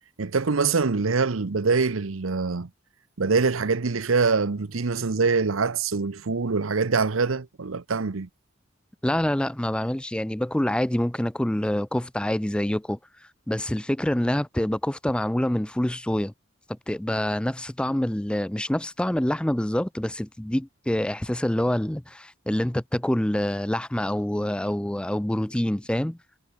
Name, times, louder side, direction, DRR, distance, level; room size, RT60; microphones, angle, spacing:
voice 1, 0.2-2.7 3.2-8.3, right 4 dB, 90° right, 0.8 m, -24 dB
voice 2, 9.0-13.0 13.5-16.3 16.9-26.2, left 1 dB, 5° left, 0.4 m, -26 dB
head